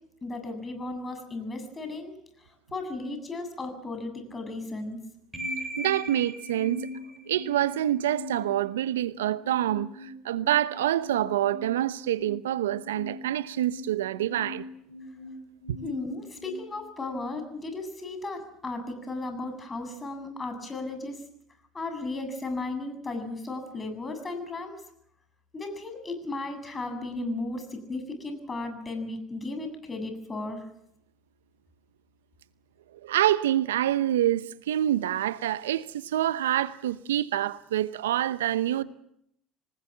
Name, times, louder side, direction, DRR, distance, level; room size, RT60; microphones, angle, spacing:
voice 1, 0.2-2.1 2.7-5.0 15.8-21.2 21.7-24.7 25.5-30.6, left 2 dB, 25° left, 7.7 m, -35 dB
sound 1, 5.3-17.4, left 1 dB, 10° right, 7.7 m, -41 dB
voice 2, 5.8-6.9 7.3-14.6 33.0-38.8, right 12 dB, 80° right, 0.9 m, -26 dB
27.0 x 19.5 x 7.5 m
hypercardioid pair, 70°, 0 cm